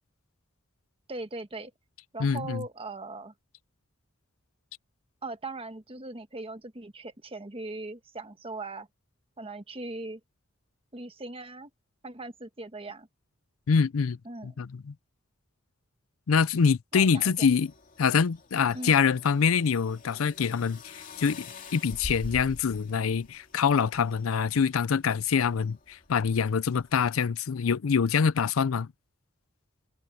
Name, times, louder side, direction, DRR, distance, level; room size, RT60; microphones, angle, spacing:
voice 1, 1.1-1.7 2.1-3.3 5.2-8.9 9.4-10.2 10.9-11.7 12.0-13.1 14.2-14.6 16.9-17.5 18.7-19.0, right 2 dB, 30° right, 1.3 m, -39 dB
voice 2, 2.2-2.6 13.7-14.2 14.4-14.9 16.3-17.7 18.0-21.5 21.7-28.9, left 6 dB, 85° left, 0.5 m, -25 dB
sound 1, 17.0-27.2, left 2 dB, 40° left, 2.7 m, -47 dB
head